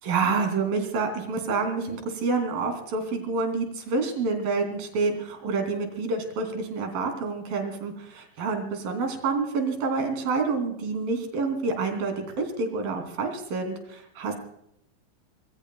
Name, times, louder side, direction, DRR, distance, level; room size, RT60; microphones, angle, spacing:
voice 1, 0.0-14.3, right 4 dB, 80° right, 5 dB, 4.9 m, -28 dB
25.5 x 22.0 x 2.3 m, 0.76 s
omnidirectional pair, 4.1 m